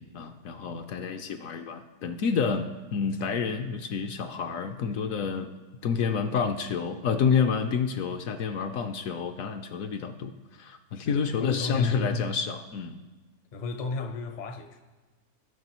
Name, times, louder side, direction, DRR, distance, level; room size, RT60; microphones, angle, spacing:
voice 1, 0.0-5.5 5.8-13.0, left 6 dB, 70° left, 0.9 m, -29 dB
voice 2, 0.7-1.1 10.1-10.2 10.9-12.0 13.5-14.8, left 3 dB, 45° left, 0.6 m, -35 dB
17.0 x 6.0 x 3.0 m
omnidirectional pair, 1.6 m